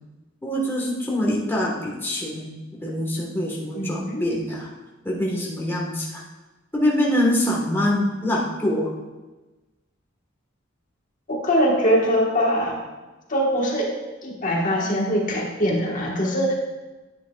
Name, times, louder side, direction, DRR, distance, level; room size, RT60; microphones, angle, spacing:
voice 1, 0.4-4.7 5.0-6.2 6.7-8.9, left 1 dB, 10° left, -4 dB, 1.3 m, -24 dB
voice 2, 3.7-4.2 11.3-12.8 13.3-13.9 14.2-16.5, equal, 45° left, -2 dB, 1.4 m, -22 dB
10.0 x 9.1 x 2.3 m, 1.2 s
head